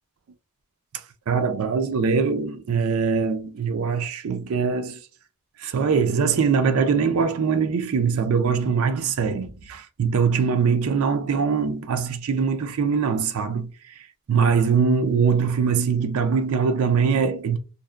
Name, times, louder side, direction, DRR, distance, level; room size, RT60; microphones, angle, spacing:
voice 1, 1.3-5.0 5.6-13.7 14.3-17.6, right 5 dB, 75° right, 0.4 m, -22 dB
2.7 x 2.1 x 2.3 m
head